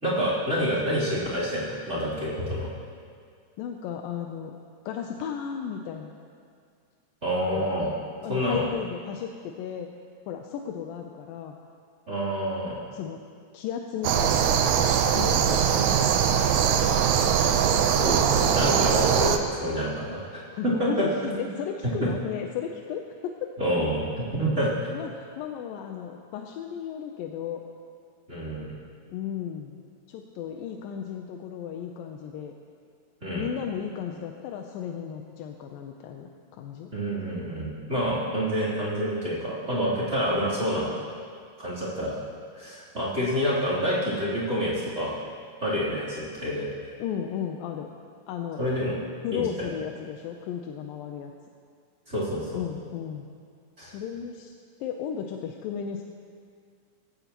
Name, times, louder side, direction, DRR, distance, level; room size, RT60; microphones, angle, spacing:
voice 1, 0.0-2.7 7.2-7.9 8.3-8.7 12.1-12.8 17.8-21.4 22.0-22.1 23.6-24.7 28.3-28.7 33.2-33.5 36.9-40.9 41.6-42.2 42.5-45.2 45.6-46.7 48.6-49.0 49.3-49.7 52.1-52.6 53.8-54.0, equal, 20° right, -10 dB, 3.4 m, -28 dB
voice 2, 3.6-4.6 4.9-6.1 7.6-7.7 8.2-9.9 10.3-11.6 12.9-13.2 13.5-14.5 15.2-16.1 20.5-23.7 24.9-27.6 29.1-29.8 30.1-32.6 33.3-36.9 47.0-47.9 48.3-48.6 49.2-51.3 52.5-53.3 53.8-54.5 54.8-56.0, left 8 dB, 90° left, 3 dB, 2.5 m, -34 dB
sound 1, 14.0-19.4, right 8 dB, 75° right, 1.8 m, -22 dB
19.5 x 16.5 x 3.0 m, 2.2 s
omnidirectional pair, 3.9 m